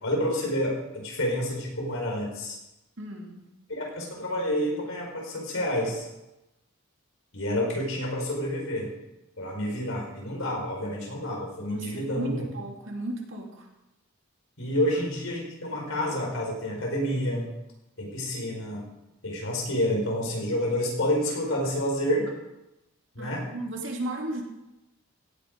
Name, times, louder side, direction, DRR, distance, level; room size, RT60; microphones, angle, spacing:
voice 1, 0.0-2.6 3.7-6.1 7.3-8.9 9.4-12.5 14.6-17.5 18.0-18.8 19.2-22.3 23.1-23.4, equal, 65° left, -1 dB, 4.6 m, -29 dB
voice 2, 3.0-3.5 11.7-13.7 23.2-24.4, right 1 dB, 60° right, 1 dB, 2.6 m, -35 dB
16.5 x 9.5 x 5.2 m, 0.96 s
head